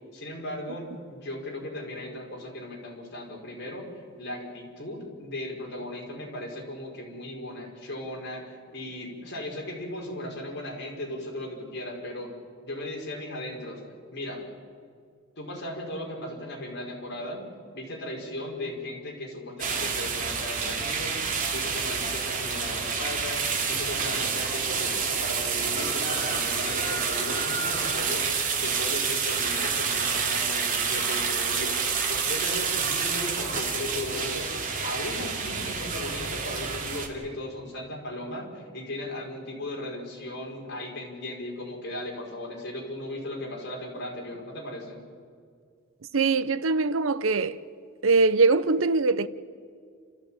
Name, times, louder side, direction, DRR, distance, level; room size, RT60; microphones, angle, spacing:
voice 1, 0.1-3.9 4.2-12.3 12.6-13.8 14.1-14.5 15.4-17.5 17.7-21.2 21.5-23.4 23.7-28.3 28.6-31.7 32.1-45.0, left 1 dB, 55° left, 5.2 m, -37 dB
sound 1, 19.6-37.1, right 5 dB, 40° right, 2.7 m, -28 dB
voice 2, 46.1-47.6 48.0-49.3, right 3 dB, 80° right, 0.8 m, -22 dB
29.0 x 14.0 x 8.9 m
head